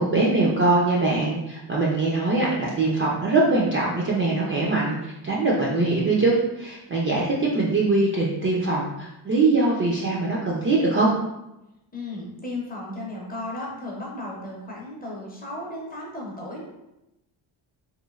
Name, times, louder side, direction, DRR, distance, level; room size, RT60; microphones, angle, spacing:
voice 1, 0.0-11.1, right 3 dB, 30° right, -4 dB, 0.3 m, -22 dB
voice 2, 11.9-16.6, left 1 dB, 20° left, -3 dB, 0.5 m, -35 dB
3.1 x 2.5 x 2.3 m, 0.91 s
cardioid pair, 140°, 49 cm